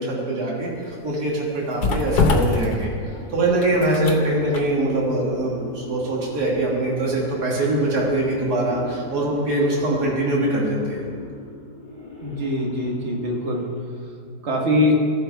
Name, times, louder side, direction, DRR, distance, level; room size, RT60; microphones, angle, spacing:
voice 1, 0.0-11.0, right 2 dB, 65° right, -4 dB, 2.2 m, -23 dB
sound 1, 0.6-8.5 8.8-9.0, left 3 dB, 75° left, 1.4 m, -27 dB
sound 2, 2.8-13.9, left 3 dB, 15° left, 1.7 m, -39 dB
voice 2, 12.2-13.7 14.4-15.0, left 1 dB, 45° right, 0 dB, 1.4 m, -22 dB
14.5 x 6.1 x 4.6 m, 2.3 s
omnidirectional pair, 1.8 m